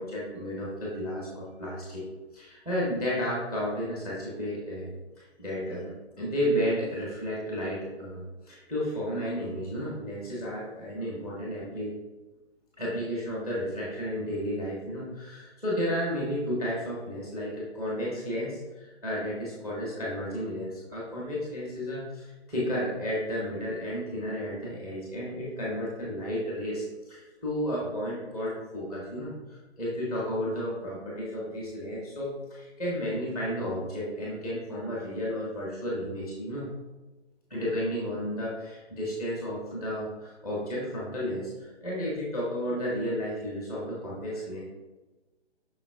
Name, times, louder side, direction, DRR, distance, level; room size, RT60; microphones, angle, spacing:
voice 1, 0.0-2.1 2.3-4.9 5.2-11.9 12.8-36.7 37.5-44.6, equal, 5° right, -6 dB, 0.9 m, -32 dB
7.1 x 5.6 x 2.3 m, 1.2 s
figure-of-eight pair, 145°, 33 cm